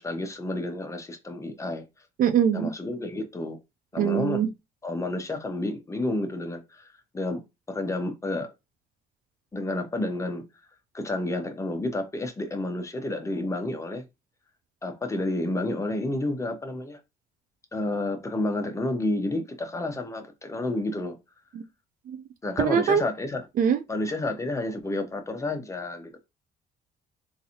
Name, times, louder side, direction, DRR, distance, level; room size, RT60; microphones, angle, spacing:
voice 1, 0.0-1.8 2.5-3.6 3.9-4.4 4.8-7.4 7.7-8.5 9.5-10.4 10.9-14.0 14.8-17.0 17.7-21.2 22.4-23.4 23.9-26.1, left 2 dB, 15° left, 0.8 m, -30 dB
voice 2, 2.2-2.7 4.0-4.5 22.1-22.2 22.6-23.0 23.6-23.8, right 8 dB, 55° right, 0.5 m, -22 dB
3.9 x 2.7 x 2.8 m
cardioid pair, 110°, 17 cm